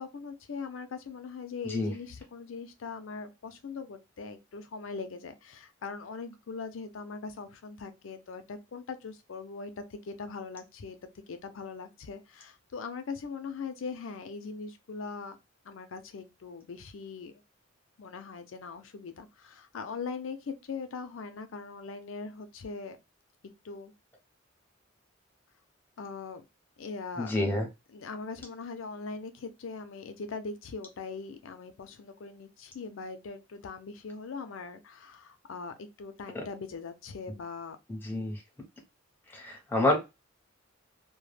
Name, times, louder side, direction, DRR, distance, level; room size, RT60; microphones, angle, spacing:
voice 1, 0.0-11.0 11.3-15.4 15.7-17.3 18.0-23.0 23.6-23.9 26.0-26.4 26.8-27.4 27.9-37.8, left 4 dB, 80° left, 0.5 m, -41 dB
voice 2, 27.2-27.7 36.3-36.4 37.9-38.4 39.3-40.0, left 1 dB, 10° left, 0.7 m, -28 dB
2.1 x 2.1 x 3.2 m
head